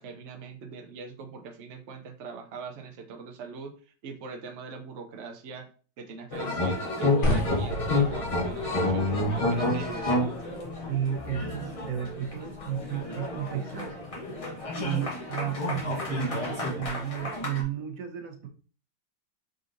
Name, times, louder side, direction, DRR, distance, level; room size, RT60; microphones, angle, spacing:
voice 1, 0.0-3.7 4.0-5.7 6.0-10.3, right 4 dB, 80° right, 4 dB, 0.6 m, -42 dB
sound 1, 6.3-17.6, left 2 dB, 40° left, 0.5 m, -30 dB
sound 2, 7.2-13.4, left 1 dB, 85° left, 1.8 m, -35 dB
voice 2, 10.9-14.0 14.8-18.5, right 10 dB, 60° right, 5 dB, 0.9 m, -33 dB
3.8 x 3.8 x 2.5 m, 0.37 s
omnidirectional pair, 2.0 m